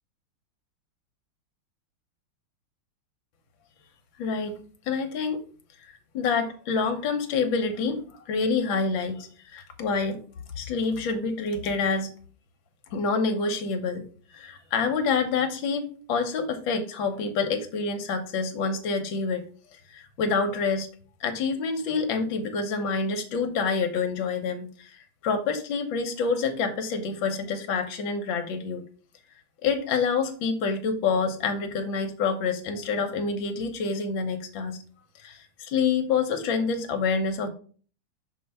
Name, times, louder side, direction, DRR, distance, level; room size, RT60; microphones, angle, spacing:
voice 1, 4.2-4.6 4.9-5.4 6.1-10.2 10.6-12.1 12.9-14.0 14.3-19.5 19.9-20.9 21.2-24.9 25.2-28.9 29.6-34.8 35.2-37.5, left 4 dB, 70° left, 6 dB, 1.7 m, -27 dB
6.3 x 3.3 x 5.4 m, 0.42 s
omnidirectional pair, 2.3 m